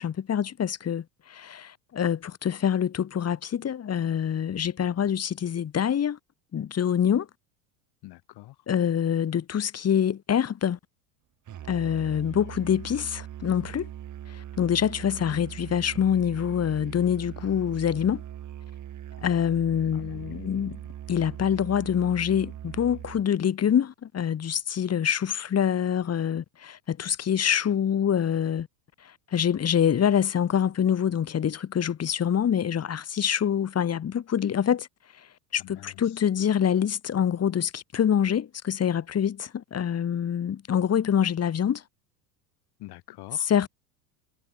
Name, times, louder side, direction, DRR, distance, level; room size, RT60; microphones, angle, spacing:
voice 1, 0.0-6.2 6.5-7.3 8.7-10.8 11.7-13.9 14.3-18.2 19.2-20.8 21.1-28.7 29.0-34.9 35.5-41.8 43.4-43.7, left 8 dB, 30° left, 2.5 m, -25 dB
voice 2, 8.0-8.6 19.9-20.6 35.6-36.2 42.8-43.5, left 18 dB, 50° left, 2.0 m, -46 dB
Musical instrument, 11.5-23.3, right 11 dB, 35° right, 2.4 m, -41 dB
hypercardioid pair, 95°, 50 cm